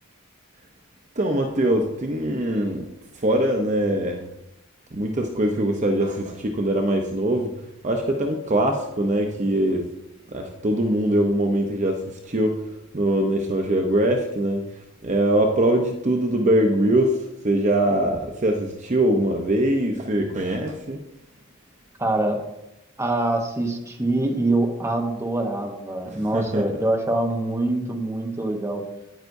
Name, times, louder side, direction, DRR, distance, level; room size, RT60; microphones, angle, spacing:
voice 1, 1.2-2.9 3.2-4.3 4.9-7.5 7.8-9.9 10.3-12.6 12.9-14.6 15.0-21.0 26.3-26.6, right 1 dB, 35° right, 3 dB, 0.7 m, -22 dB
voice 2, 22.0-22.4 23.0-28.8, right 2 dB, 15° right, 2 dB, 1.0 m, -24 dB
9.5 x 9.1 x 2.7 m, 0.88 s
head